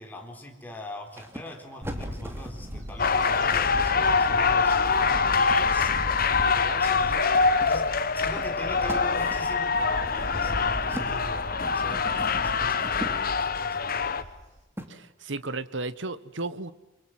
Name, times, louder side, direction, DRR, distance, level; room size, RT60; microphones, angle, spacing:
voice 1, 0.0-4.8 5.3-5.9 6.4-7.3 7.6-14.2, left 1 dB, 10° left, 2 dB, 4.1 m, -42 dB
sound 1, 1.1-6.5 7.3-13.7 14.8-14.9, equal, 10° right, 2.8 m, -42 dB
Bird / Wind, 1.8-14.6, equal, 40° right, 6.0 m, -38 dB
sound 2, 3.0-14.2, left 5 dB, 50° left, 1.2 m, -24 dB
voice 2, 14.9-16.7, right 3 dB, 70° right, 15 dB, 1.3 m, -34 dB
29.0 x 24.0 x 7.7 m, 1.0 s
head